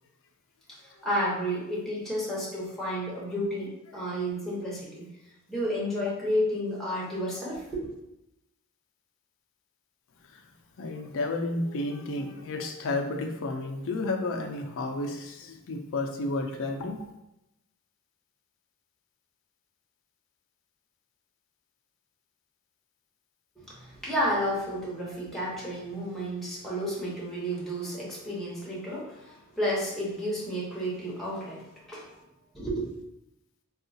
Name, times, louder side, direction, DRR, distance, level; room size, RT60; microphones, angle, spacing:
voice 1, 0.7-5.1 5.5-7.9 23.6-32.1 32.5-32.8, equal, ahead, -6 dB, 0.9 m, -31 dB
voice 2, 10.8-17.0, left 2 dB, 65° left, 4 dB, 0.4 m, -31 dB
3.6 x 2.4 x 2.7 m, 0.87 s
head